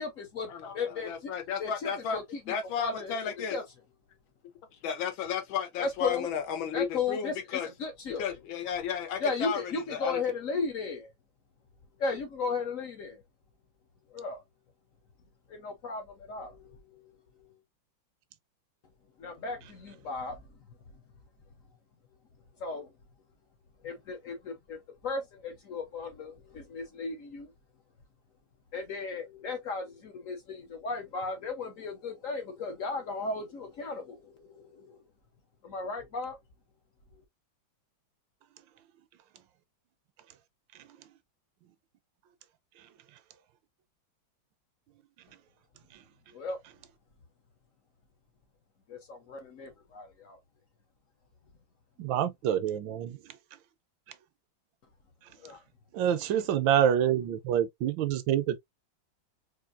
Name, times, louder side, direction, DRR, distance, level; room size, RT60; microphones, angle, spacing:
voice 1, 0.0-1.3 1.6-3.6 5.8-6.3 6.7-8.2 9.2-11.1 12.0-13.2 14.1-14.4 15.5-17.0 17.4-17.6 19.2-20.4 22.6-22.9 23.8-24.8 25.0-27.5 28.7-35.1 35.6-36.4 37.1-37.2 46.3-46.6 48.9-50.4 55.4-55.6, left 4 dB, 60° left, 0.9 m, -35 dB
voice 2, 1.1-2.2 2.5-3.6 4.8-7.7 8.2-9.6 9.9-10.2, left 7 dB, 85° left, 1.7 m, -33 dB
voice 3, 52.0-53.2 55.9-58.6, right 10 dB, 80° right, 1.3 m, -26 dB
4.4 x 2.6 x 2.4 m
omnidirectional pair, 2.1 m